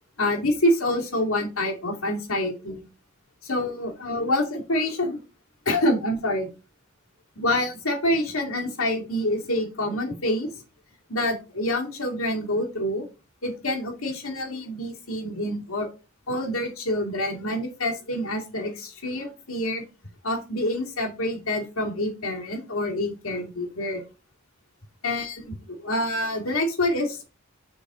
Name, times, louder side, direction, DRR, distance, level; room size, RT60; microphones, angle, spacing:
voice 1, 0.2-2.8 3.4-5.2 5.7-6.5 7.4-10.5 11.1-13.1 13.4-15.9 16.3-19.8 20.2-24.0 25.0-27.2, left 1 dB, 80° left, 0 dB, 2.3 m, -27 dB
6.9 x 4.1 x 4.9 m, 0.31 s
head